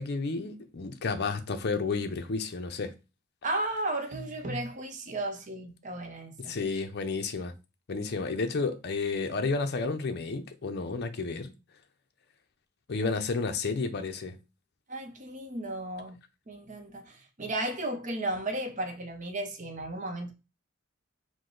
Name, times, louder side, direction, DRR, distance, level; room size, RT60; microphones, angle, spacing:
voice 1, 0.0-2.9 6.4-7.5 7.9-11.5 12.9-14.4, left 4 dB, 50° left, 0.5 m, -31 dB
voice 2, 3.4-6.6 14.9-16.2 16.5-20.3, right 1 dB, 35° right, 0.7 m, -34 dB
4.7 x 2.1 x 3.8 m
head